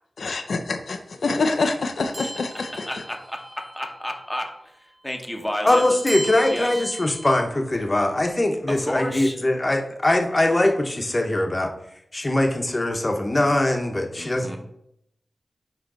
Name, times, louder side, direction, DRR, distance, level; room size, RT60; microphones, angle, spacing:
voice 1, 0.2-2.9, left 3 dB, 85° left, 6 dB, 0.5 m, -26 dB
sound 1, 2.1-3.8 4.1-4.3 5.7-7.4, right 1 dB, 45° right, 2.0 m, -36 dB
voice 2, 2.7-4.5 5.0-5.8 6.5-6.8 8.7-9.4 14.2-14.6, equal, 5° left, 3 dB, 1.0 m, -31 dB
voice 3, 5.6-11.7 12.1-14.6, left 1 dB, 30° left, 3 dB, 0.9 m, -22 dB
9.5 x 3.2 x 3.9 m, 0.76 s
wide cardioid pair, 70°, 0 cm